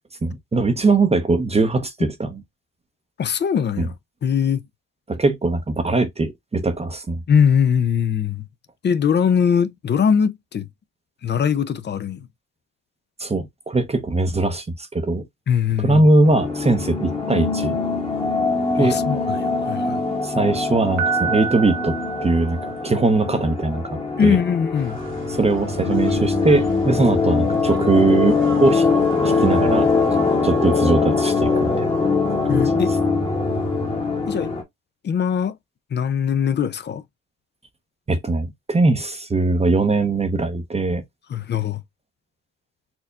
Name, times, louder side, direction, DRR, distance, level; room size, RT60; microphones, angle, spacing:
voice 1, 0.2-2.4 3.8-3.9 5.1-7.2 13.2-15.2 15.8-17.8 18.7-19.0 20.2-22.6 22.8-24.4 25.3-28.9 29.2-29.9 30.4-31.9 32.4-32.7 38.1-41.0, right 3 dB, 20° right, 0.7 m, -20 dB
voice 2, 3.2-3.9 4.2-4.6 7.3-8.4 8.8-10.6 11.2-12.2 15.5-16.0 18.8-20.0 24.2-25.0 32.5-32.9 34.3-34.5 35.0-35.5 35.9-37.0 41.3-41.8, left 7 dB, 35° left, 0.5 m, -21 dB
sound 1, 16.2-34.6, left 4 dB, 20° left, 1.1 m, -22 dB
Piano, 21.0-23.1, right 7 dB, 65° right, 1.0 m, -28 dB
sound 2, 24.7-30.4, right 4 dB, 40° right, 1.1 m, -41 dB
4.4 x 2.7 x 2.2 m
cardioid pair, 90°, 30 cm